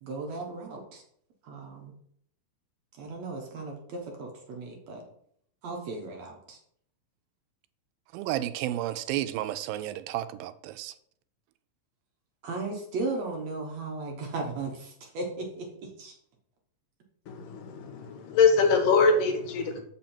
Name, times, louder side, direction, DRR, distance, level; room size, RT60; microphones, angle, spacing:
voice 1, 0.0-1.0 1.4-1.9 3.0-5.0 5.6-6.6 12.4-16.1, right 3 dB, 60° right, 2.0 m, -36 dB
voice 2, 8.1-10.9, right 13 dB, 85° right, 2.3 m, -32 dB
voice 3, 17.3-19.8, left 4 dB, 70° left, 2.5 m, -23 dB
7.2 x 5.7 x 4.4 m
omnidirectional pair, 4.1 m